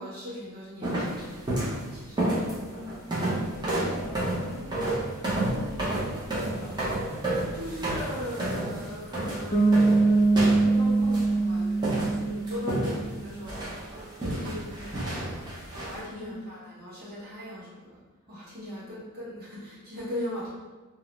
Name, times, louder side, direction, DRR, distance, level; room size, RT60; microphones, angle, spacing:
voice 1, 0.0-2.2 7.5-15.5 15.8-18.0 18.3-20.5, left 1 dB, 45° right, -9 dB, 1.1 m, -39 dB
sound 1, 0.8-1.8 2.2-11.4 11.8-13.2 13.4-16.0, right 1 dB, 20° right, 0.6 m, -31 dB
voice 2, 2.6-5.0 5.3-6.9 16.1-16.5 18.7-18.9, left 1 dB, 80° left, 0 dB, 0.5 m, -43 dB
Bass guitar, 9.5-13.2, right 3 dB, 30° left, 0.3 m, -23 dB
2.6 x 2.1 x 3.0 m, 1.3 s
head